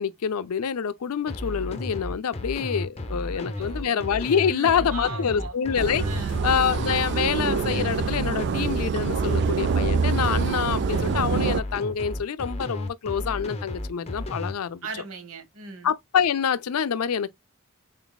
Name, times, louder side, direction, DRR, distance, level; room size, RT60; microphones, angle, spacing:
voice 1, 0.0-6.0 6.4-14.9 15.8-17.3, left 7 dB, 75° left, 0.5 m, -26 dB
sound 1, 1.3-14.5, left 2 dB, 30° left, 0.8 m, -33 dB
voice 2, 3.6-4.0 4.4-5.6 6.0-6.4 14.8-15.9, right 4 dB, 70° right, 1.1 m, -38 dB
sound 2, 5.8-11.6, right 6 dB, 50° right, 0.3 m, -26 dB
sound 3, 6.3-7.2 7.5-7.6 10.2-11.5, equal, 85° right, 1.8 m, -43 dB
4.0 x 3.9 x 2.3 m
head